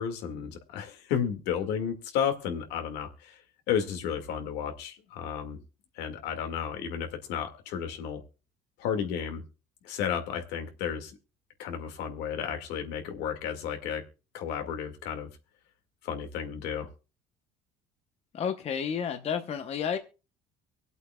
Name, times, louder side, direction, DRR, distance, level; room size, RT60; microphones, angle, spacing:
voice 1, 0.0-3.4 3.7-5.6 6.0-8.2 8.8-9.4 9.8-11.2 11.6-14.0 14.3-15.3 16.0-16.9, left 8 dB, 80° left, 6 dB, 2.0 m, -32 dB
voice 2, 18.3-20.0, left 7 dB, 40° left, 8 dB, 0.9 m, -31 dB
24.0 x 8.1 x 2.3 m, 0.32 s
cardioid pair, 130°, 17 cm